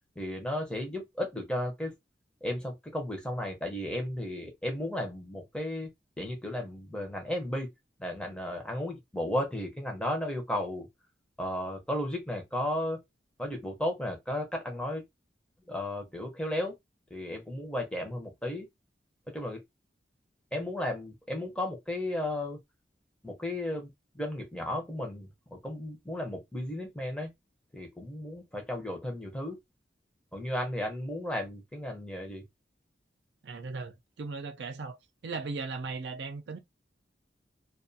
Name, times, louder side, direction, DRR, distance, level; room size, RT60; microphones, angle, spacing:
voice 1, 0.2-1.9 2.4-5.9 6.2-7.7 8.0-10.9 11.4-13.0 13.4-15.0 15.7-16.7 17.1-18.7 19.3-19.6 20.5-22.6 23.2-27.3 27.7-29.6 30.3-32.4, left 1 dB, 5° left, 0.6 m, -34 dB
voice 2, 33.4-35.0 35.2-36.6, right 4 dB, 75° right, 0.4 m, -37 dB
2.4 x 2.3 x 2.6 m
head